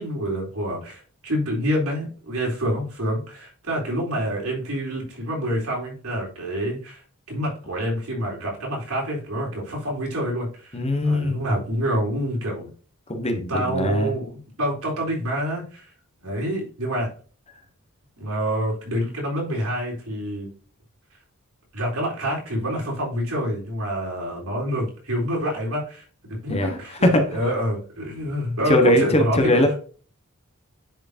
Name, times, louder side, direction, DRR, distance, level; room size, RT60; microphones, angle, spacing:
voice 1, 0.0-7.0 7.3-10.8 11.0-12.7 13.5-15.9 16.2-17.1 18.2-20.5 21.7-26.0 26.3-29.6, equal, 75° right, -2 dB, 4.0 m, -27 dB
voice 2, 10.7-11.6 13.1-14.1 26.5-26.8 27.0-27.4 28.7-29.7, left 1 dB, 30° left, 5 dB, 1.3 m, -21 dB
10.5 x 5.0 x 2.8 m, 0.40 s
head